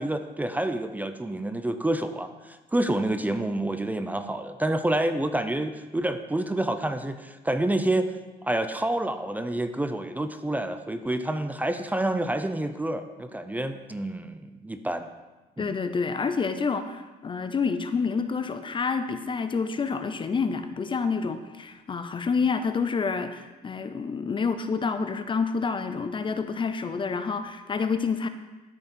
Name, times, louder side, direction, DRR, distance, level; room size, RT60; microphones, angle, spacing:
voice 1, 0.0-8.1 8.4-15.1 15.6-15.7, right 1 dB, 10° right, 9 dB, 0.6 m, -28 dB
voice 2, 15.6-28.3, left 5 dB, 30° left, 9 dB, 0.6 m, -28 dB
13.5 x 6.4 x 4.3 m, 1.2 s
cardioid pair, 110°, 17 cm